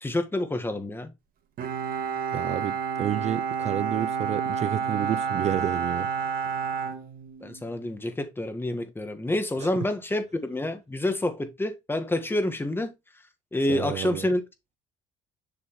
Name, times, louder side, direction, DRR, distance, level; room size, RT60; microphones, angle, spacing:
voice 1, 0.0-1.1 7.4-12.9 13.5-14.4, left 1 dB, 15° left, 1.5 m, -28 dB
Bowed string instrument, 1.6-7.7, right 6 dB, 60° right, 1.9 m, -30 dB
voice 2, 2.3-6.1 9.6-9.8 13.7-14.3, right 10 dB, 40° right, 0.4 m, -30 dB
7.3 x 6.2 x 3.1 m
cardioid pair, 110°, 17 cm